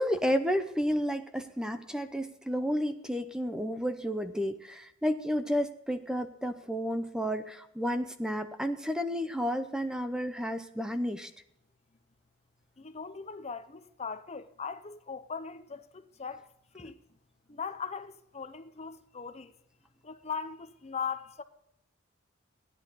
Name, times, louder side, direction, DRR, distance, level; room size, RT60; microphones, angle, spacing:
voice 1, 0.0-11.3, equal, 5° right, 0.7 m, -31 dB
voice 2, 12.8-16.5 16.7-17.0 17.5-19.5 20.0-21.4, left 6 dB, 30° left, 0.7 m, -39 dB
16.5 x 10.5 x 4.0 m
head